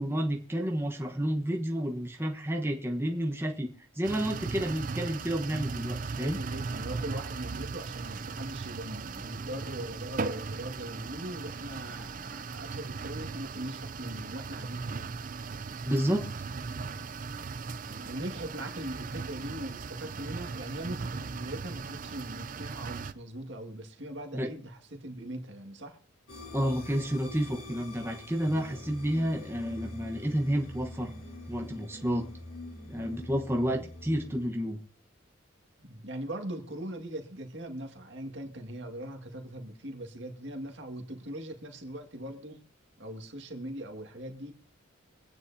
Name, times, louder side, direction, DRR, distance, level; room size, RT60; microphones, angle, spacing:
voice 1, 0.0-6.4 15.8-16.2 24.3-24.5 26.5-31.1 31.5-32.3 32.9-34.8, equal, 10° right, 1.1 m, -30 dB
sound 1, 4.0-23.1, right 4 dB, 40° right, 0.5 m, -38 dB
voice 2, 5.8-15.1 16.9-17.2 17.8-26.0 35.8-42.6 43.0-44.5, right 1 dB, 65° right, 2.0 m, -40 dB
sound 2, 26.3-34.5, left 2 dB, 80° left, 6.8 m, -45 dB
25.0 x 9.4 x 2.8 m
head